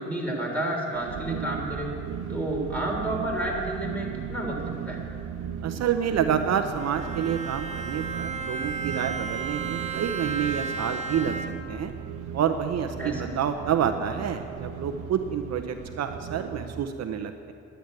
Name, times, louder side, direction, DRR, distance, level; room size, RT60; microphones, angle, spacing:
voice 1, 0.0-1.9 2.3-5.0 13.0-13.3, right 1 dB, 5° left, -1 dB, 3.3 m, -30 dB
sound 1, 0.9-16.8, right 8 dB, 85° right, 0.9 m, -37 dB
voice 2, 5.6-11.3 11.7-11.9 12.3-17.5, right 8 dB, 60° right, 7 dB, 0.7 m, -28 dB
Bowed string instrument, 6.7-11.8, right 4 dB, 25° right, 1.0 m, -34 dB
10.5 x 8.0 x 9.5 m, 2.8 s
cardioid pair, 90°, 30 cm